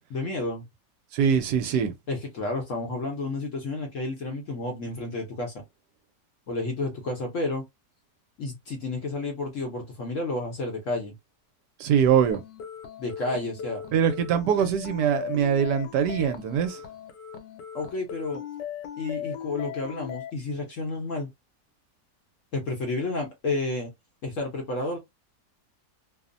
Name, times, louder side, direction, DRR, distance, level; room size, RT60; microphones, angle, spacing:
voice 1, 0.1-0.6 2.1-5.6 6.5-7.6 8.4-11.1 13.0-13.8 17.7-18.4 19.0-21.3 22.5-23.9 24.2-25.0, left 2 dB, 60° left, 0.9 m, -31 dB
voice 2, 1.1-1.9 11.8-12.4 13.9-16.8, right 8 dB, 75° right, 1.1 m, -23 dB
sound 1, 12.3-20.3, left 9 dB, 80° left, 1.2 m, -39 dB
2.9 x 2.0 x 2.5 m
omnidirectional pair, 1.9 m